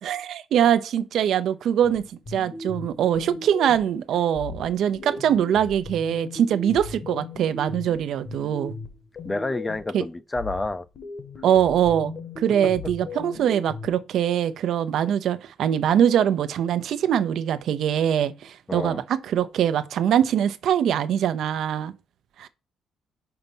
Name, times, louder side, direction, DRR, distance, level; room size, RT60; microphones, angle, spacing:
voice 1, 0.0-2.0 2.3-8.7 9.9-10.0 11.4-21.9 22.4-22.5, right 9 dB, 75° right, 0.7 m, -23 dB
sound 1, 1.8-4.0 4.3-10.0 10.3-13.9, left 4 dB, 50° left, 1.5 m, -38 dB
voice 2, 9.2-10.9 18.7-19.0, left 2 dB, 20° left, 0.6 m, -29 dB
5.7 x 3.9 x 5.4 m
cardioid pair, 90°, 0 cm